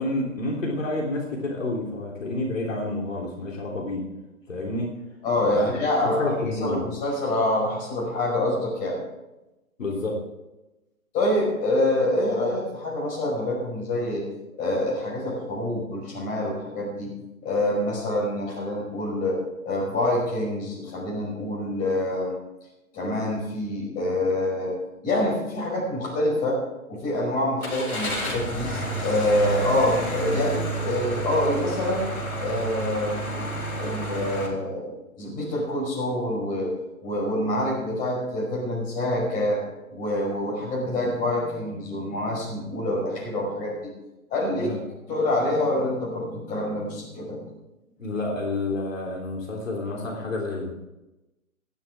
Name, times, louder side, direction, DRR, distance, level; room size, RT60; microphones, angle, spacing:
voice 1, 0.0-4.0 4.5-4.9 5.5-5.7 6.0-6.8 9.8-10.2 44.6-44.8 48.0-50.7, left 2 dB, 60° left, -1 dB, 3.6 m, -29 dB
voice 2, 5.2-6.3 6.6-9.0 11.1-14.2 14.6-17.1 17.4-19.4 19.6-22.4 22.9-24.7 25.0-26.6 26.9-28.7 29.0-32.1 32.4-33.5 33.8-36.7 37.0-39.6 39.9-43.9 44.3-44.7 45.1-47.6, left 1 dB, 20° left, -3 dB, 5.3 m, -26 dB
Car / Engine starting, 27.6-34.5, right 1 dB, 80° left, 3.8 m, -30 dB
17.0 x 12.5 x 3.7 m, 0.99 s
figure-of-eight pair, 130°, 43 cm